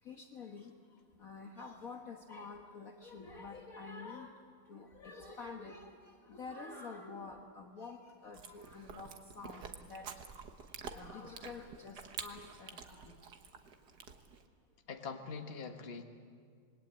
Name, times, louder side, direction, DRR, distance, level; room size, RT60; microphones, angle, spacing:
voice 1, 0.0-10.3 10.6-13.2, left 4 dB, 50° left, 3 dB, 1.6 m, -49 dB
Chewing mastication, 8.3-14.5, right 6 dB, 60° right, 1.8 m, -49 dB
voice 2, 14.9-16.0, left 5 dB, 30° left, 5 dB, 1.6 m, -43 dB
27.0 x 21.0 x 8.9 m, 2.1 s
omnidirectional pair, 2.1 m